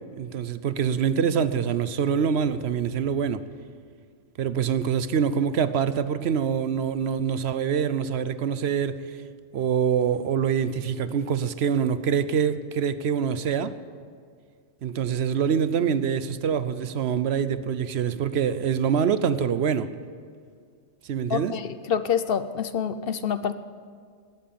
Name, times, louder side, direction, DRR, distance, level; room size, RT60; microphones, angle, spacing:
voice 1, 0.2-3.4 4.4-9.0 9.5-13.7 14.8-19.9 21.0-21.5, right 7 dB, 65° right, 13 dB, 0.9 m, -25 dB
voice 2, 21.3-23.5, left 7 dB, 60° left, 11 dB, 0.8 m, -27 dB
19.0 x 7.7 x 8.6 m, 2.1 s
omnidirectional pair, 1.2 m